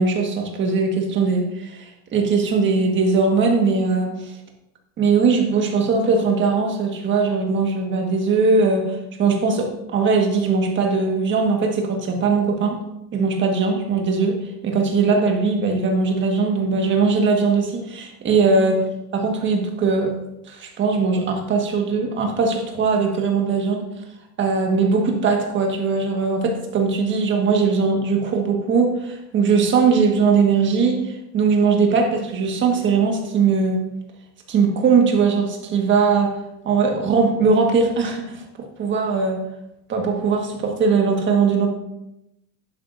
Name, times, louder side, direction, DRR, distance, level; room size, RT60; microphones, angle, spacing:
voice 1, 0.0-1.8 2.1-4.1 5.0-12.8 13.1-14.3 14.6-20.2 20.5-23.9 24.4-33.8 34.5-36.4 36.6-38.4 38.8-39.4 39.9-41.7, right 4 dB, 25° right, 2 dB, 1.5 m, -20 dB
11.5 x 9.3 x 2.6 m, 0.86 s
cardioid pair, 165°, 45 cm